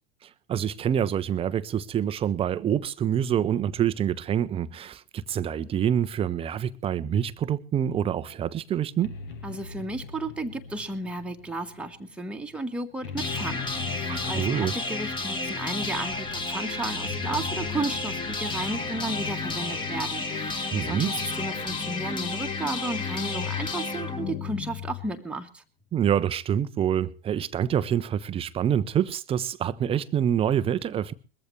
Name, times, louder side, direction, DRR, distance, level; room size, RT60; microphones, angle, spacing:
voice 1, 0.2-9.1 14.1-14.7 20.7-21.1 25.9-31.1, right 9 dB, 20° right, 0.7 m, -26 dB
sound 1, 8.2-20.0, left 6 dB, 60° left, 2.0 m, -41 dB
voice 2, 9.4-25.6, right 2 dB, 5° right, 1.5 m, -34 dB
sound 2, 13.2-25.1, left 3 dB, 15° left, 1.8 m, -31 dB
21.5 x 14.5 x 3.3 m
figure-of-eight pair, 90°, 30 cm